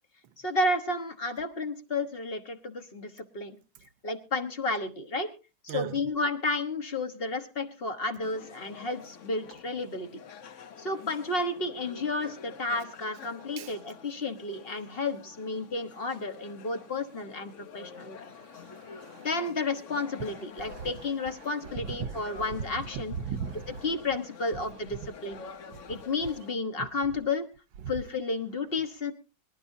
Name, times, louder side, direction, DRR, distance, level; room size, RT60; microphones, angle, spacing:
voice 1, 0.4-3.6 4.0-5.3 5.6-10.2 10.8-18.2 19.2-23.1 23.8-25.4 25.9-27.5 27.9-29.1, left 3 dB, 35° left, 1.3 m, -32 dB
voice 2, 5.7-6.0 13.6-13.7 17.9-19.3 20.6-20.9 21.8-22.5 22.9-23.8 25.0-25.1 25.7-25.8 26.8-26.9, right 7 dB, 85° right, 1.6 m, -38 dB
sound 1, 8.2-26.6, left 6 dB, 50° left, 1.0 m, -48 dB
23.5 x 12.5 x 2.7 m
omnidirectional pair, 2.0 m